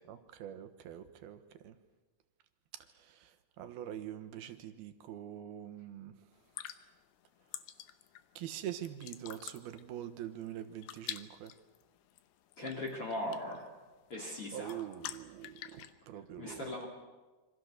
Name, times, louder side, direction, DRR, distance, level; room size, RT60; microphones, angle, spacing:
voice 1, 0.1-1.4 1.6-1.8 2.7-3.3 3.6-6.1 8.4-11.5 14.5-16.9, right 11 dB, 70° right, 9 dB, 3.0 m, -44 dB
sound 1, 6.3-15.9, left 12 dB, 75° left, 2.8 m, -49 dB
voice 2, 12.6-13.7 14.1-14.9 16.4-16.9, left 1 dB, 35° left, -1 dB, 3.8 m, -39 dB
27.5 x 25.0 x 6.6 m, 1.3 s
omnidirectional pair, 4.7 m